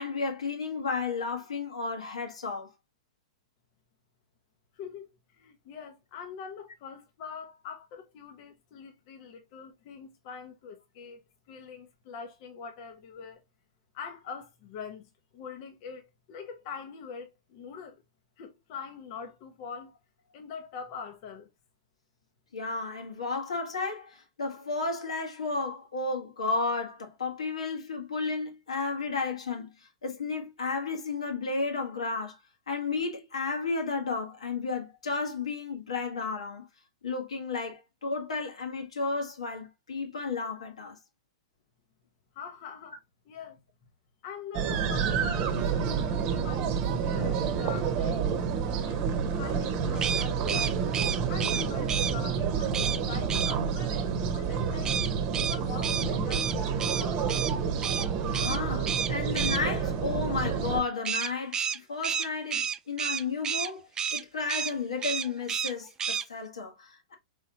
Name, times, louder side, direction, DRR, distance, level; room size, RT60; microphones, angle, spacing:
voice 1, 0.0-2.7 22.5-32.4 32.7-36.7 37.0-41.0 58.2-67.1, left 4 dB, 85° left, 1.4 m, -33 dB
voice 2, 4.7-13.4 13.9-18.0 18.4-20.0 20.3-21.5 42.3-43.0 43.3-43.6 44.2-48.3 48.8-50.8 51.3-55.0 55.4-57.3, left 6 dB, 50° left, 0.8 m, -44 dB
sound 1, 44.5-60.8, right 6 dB, 40° right, 0.9 m, -29 dB
sound 2, 49.9-52.1 52.7-53.0 53.3-53.5 54.8-57.5 57.8-58.1 58.3-58.6 58.9-59.6 61.0-63.7 64.0-64.2 64.5-64.7 65.0-65.7 66.0-66.2, right 8 dB, 20° right, 0.4 m, -30 dB
4.2 x 3.5 x 2.8 m
hypercardioid pair, 110°, 3 cm